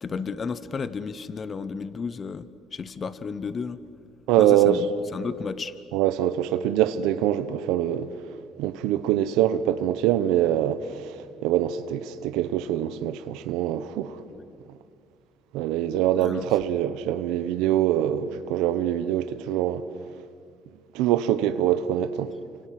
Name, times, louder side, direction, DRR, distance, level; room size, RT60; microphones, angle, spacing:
voice 1, 0.0-3.8 4.4-5.7 14.3-14.4 16.2-16.5, left 5 dB, 30° left, 1.0 m, -33 dB
voice 2, 4.3-4.8 5.9-8.1 8.6-14.2 15.5-19.8 20.9-22.3, right 12 dB, 90° right, 1.0 m, -24 dB
29.0 x 26.0 x 7.7 m
cardioid pair, 125°, 0 cm